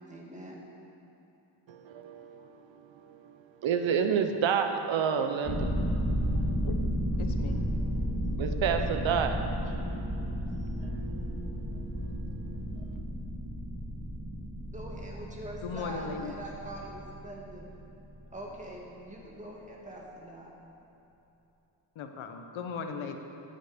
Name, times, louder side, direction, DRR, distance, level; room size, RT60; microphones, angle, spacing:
voice 1, 0.1-0.6 14.7-17.6 18.3-20.5, right 1 dB, 15° right, -3 dB, 2.4 m, -43 dB
voice 2, 1.7-3.2 3.6-5.8 6.3-6.5 8.0-12.6 12.9-13.0, right 7 dB, 70° right, 7 dB, 0.9 m, -31 dB
sound 1, 5.4-18.6, equal, 30° left, 2.5 m, -33 dB
voice 3, 7.2-7.6 15.6-16.4 21.9-23.2, left 5 dB, 75° left, 5 dB, 1.2 m, -37 dB
14.5 x 9.0 x 5.2 m, 2.9 s
cardioid pair, 100°, 48 cm